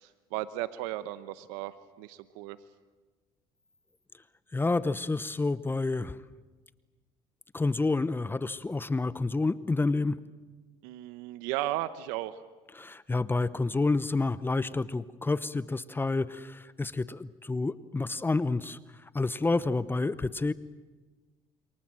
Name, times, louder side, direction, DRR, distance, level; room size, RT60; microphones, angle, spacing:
voice 1, 0.0-2.6 10.8-12.4, right 14 dB, 85° right, 13 dB, 0.9 m, -35 dB
voice 2, 4.5-6.2 7.5-10.2 12.7-20.5, left 3 dB, 15° left, 16 dB, 0.8 m, -29 dB
28.5 x 23.5 x 7.7 m, 1.3 s
supercardioid pair, 85°, 13 cm